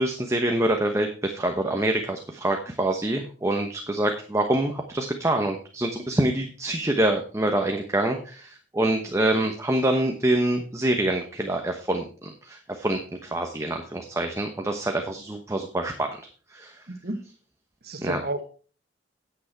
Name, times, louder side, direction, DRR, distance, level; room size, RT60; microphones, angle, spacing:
voice 1, 0.0-16.8 18.0-18.2, right 1 dB, 15° right, 1.0 m, -26 dB
voice 2, 16.9-17.2 17.8-18.4, right 1 dB, 55° right, 1.5 m, -32 dB
9.6 x 8.2 x 4.6 m
head